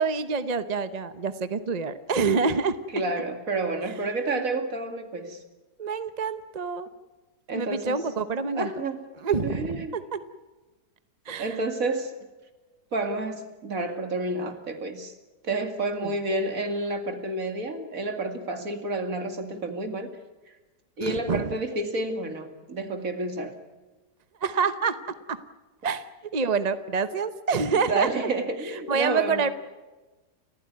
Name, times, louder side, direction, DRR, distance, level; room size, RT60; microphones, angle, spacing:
voice 1, 0.0-2.7 3.9-4.0 4.3-4.4 5.8-6.9 7.5-8.7 9.2-10.2 11.3-11.6 16.0-16.1 21.0-21.5 24.4-25.0 25.8-26.1 26.3-28.1 28.9-29.5, right 5 dB, 30° right, 12 dB, 0.8 m, -27 dB
voice 2, 2.9-5.4 7.5-8.0 8.5-9.0 9.4-10.0 11.4-12.1 12.9-15.1 15.4-20.1 21.0-23.5 27.9-29.5, right 2 dB, 55° right, 7 dB, 2.7 m, -30 dB
30.0 x 15.0 x 9.6 m, 1.2 s
omnidirectional pair, 1.8 m